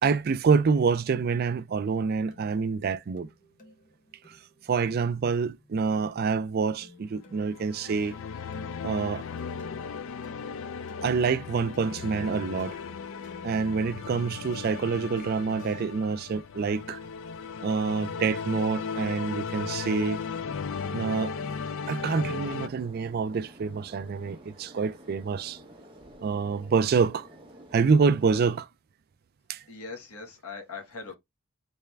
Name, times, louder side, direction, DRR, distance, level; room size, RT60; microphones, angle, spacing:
voice 1, 0.0-3.3 4.3-4.4 4.7-8.1 8.8-9.2 11.0-12.8 13.4-17.0 17.6-20.2 20.9-21.3 21.9-25.6 26.2-27.3 27.7-28.7 29.5-29.6, right 5 dB, 45° right, 0.3 m, -26 dB
sound 1, 1.7-15.9, left 1 dB, 35° left, 1.1 m, -51 dB
sound 2, 7.3-22.7, left 5 dB, 60° left, 0.3 m, -36 dB
sound 3, 19.6-28.6, equal, 20° right, 0.8 m, -50 dB
voice 2, 29.7-31.2, left 4 dB, 85° left, 1.3 m, -40 dB
3.5 x 3.3 x 3.1 m
head